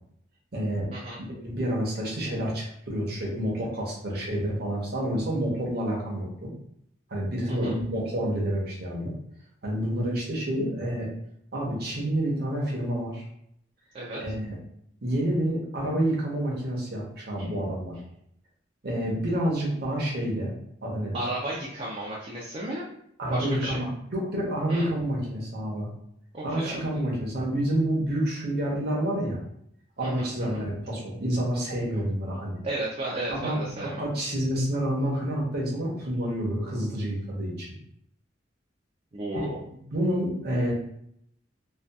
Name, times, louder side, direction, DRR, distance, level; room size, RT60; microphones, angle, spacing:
voice 1, 0.5-0.9 1.2-6.5 7.1-9.1 9.6-11.1 11.5-13.2 14.2-14.5 15.0-18.0 18.8-20.5 20.8-21.3 23.2-25.9 26.4-29.4 30.0-32.6 33.3-37.7 39.9-40.7, right 1 dB, 55° right, -3 dB, 0.7 m, -28 dB
voice 2, 21.1-22.9 23.3-23.8 24.7-24.9 26.3-27.2 30.0-30.6 31.9-32.0 32.6-34.1 39.1-39.6, right 1 dB, 35° right, -5 dB, 0.4 m, -34 dB
2.6 x 2.3 x 2.2 m, 0.72 s
head